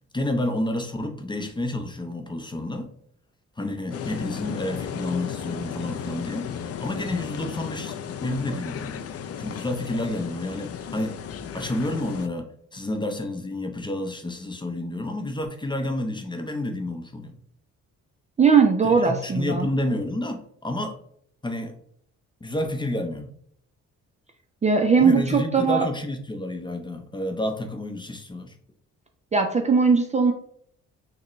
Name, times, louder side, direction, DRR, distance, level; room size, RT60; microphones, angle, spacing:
voice 1, 0.1-2.9 3.6-8.0 8.2-9.1 9.4-11.1 11.5-17.3 18.8-21.0 21.4-21.7 22.4-23.3 25.0-28.5, left 1 dB, 15° left, 5 dB, 0.7 m, -30 dB
sound 1, 3.9-12.3, left 8 dB, 55° left, 0.5 m, -35 dB
voice 2, 18.4-19.7 24.6-25.9 29.3-30.3, right 5 dB, 25° right, 3 dB, 0.5 m, -19 dB
6.4 x 2.2 x 3.1 m, 0.66 s
cardioid pair, 90°, 30 cm